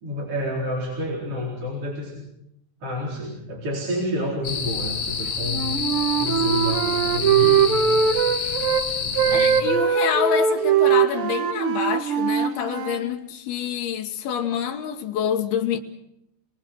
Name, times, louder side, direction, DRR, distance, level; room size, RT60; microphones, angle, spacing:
voice 1, 0.0-2.2 2.8-5.7 6.2-8.1 9.0-9.7, equal, 40° right, 5.0 m, -29 dB
sound 1, 4.4-9.6, left 6 dB, 40° left, 1.9 m, -28 dB
Wind instrument woodwind instrument, 5.5-8.8 9.1-13.0, right 7 dB, 65° right, 1.3 m, -21 dB
voice 2, 9.3-15.8, left 8 dB, 90° left, 3.3 m, -27 dB
29.5 x 20.5 x 6.2 m
omnidirectional pair, 4.3 m